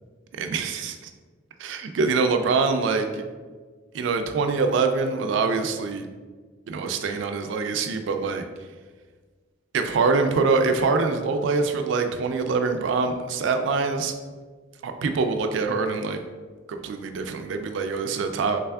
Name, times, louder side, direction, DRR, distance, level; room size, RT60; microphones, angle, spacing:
voice 1, 0.3-1.1 1.6-3.2 3.9-6.1 6.7-8.5 9.7-14.1 14.8-16.2 16.7-18.6, right 4 dB, 70° right, 6 dB, 0.3 m, -24 dB
3.4 x 3.3 x 2.3 m, 1.4 s
head